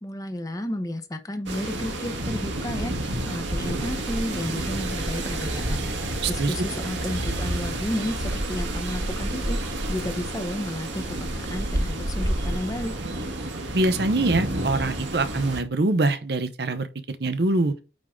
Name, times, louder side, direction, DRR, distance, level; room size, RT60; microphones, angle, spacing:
voice 1, 0.0-5.8 6.3-12.9, left 1 dB, 20° left, 0.7 m, -32 dB
sound 1, 1.5-15.6, right 1 dB, 80° right, 1.6 m, -29 dB
voice 2, 6.2-6.5 13.7-17.7, right 2 dB, 60° right, 0.7 m, -24 dB
8.6 x 3.6 x 3.6 m
head